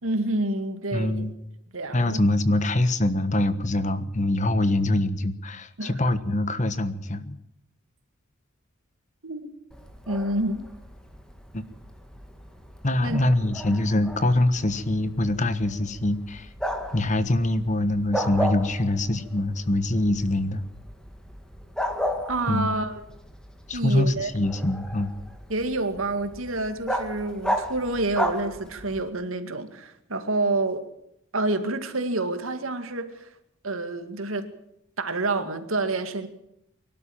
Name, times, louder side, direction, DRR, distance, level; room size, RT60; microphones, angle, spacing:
voice 1, 0.0-1.2 1.7-2.2 5.8-6.0 9.2-9.5 10.1-10.7 13.0-13.2 22.3-23.0 23.7-24.3 25.5-30.9 31.3-33.3 33.6-34.5 35.0-36.3, right 2 dB, 80° right, 2.2 m, -28 dB
voice 2, 0.9-1.3 1.9-7.4 11.5-11.6 12.8-16.5 16.9-20.6 22.5-22.7 23.7-25.1, left 1 dB, 35° left, 1.3 m, -24 dB
Bark, 9.7-29.1, equal, 5° left, 2.0 m, -35 dB
24.0 x 12.5 x 8.8 m
head